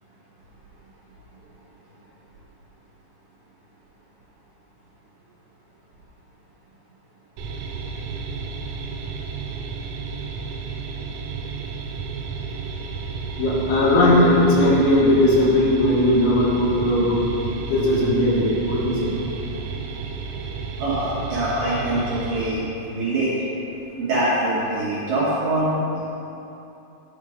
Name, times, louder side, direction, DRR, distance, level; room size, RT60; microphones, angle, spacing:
sound 1, 7.4-22.5, right 4 dB, 85° right, 3.1 m, -32 dB
voice 1, 13.4-17.3 17.7-19.1 23.0-23.1, left 1 dB, 80° left, -5 dB, 3.7 m, -18 dB
voice 2, 20.8-23.3 24.0-26.0, right 1 dB, 65° right, -9 dB, 2.6 m, -24 dB
11.0 x 3.7 x 4.9 m, 2.9 s
omnidirectional pair, 5.5 m